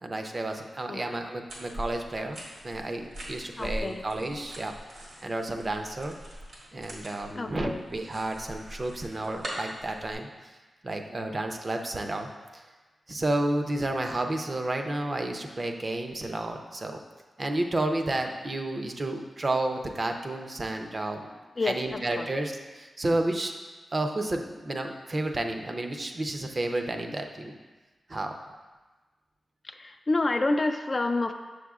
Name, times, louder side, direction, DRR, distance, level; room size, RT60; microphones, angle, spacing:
voice 1, 0.0-4.7 5.2-6.2 6.7-10.3 10.8-12.6 13.1-17.0 17.4-21.3 21.6-23.5 23.9-27.6 28.1-28.3, right 2 dB, 35° right, 4 dB, 0.5 m, -31 dB
sound 1, 1.5-10.1, equal, 85° right, 1.5 m, -42 dB
voice 2, 3.6-4.0 7.4-7.8 21.6-22.3 29.7-31.3, left 2 dB, 40° left, 7 dB, 0.3 m, -28 dB
6.5 x 6.2 x 2.4 m, 1.3 s
wide cardioid pair, 80°, 0 cm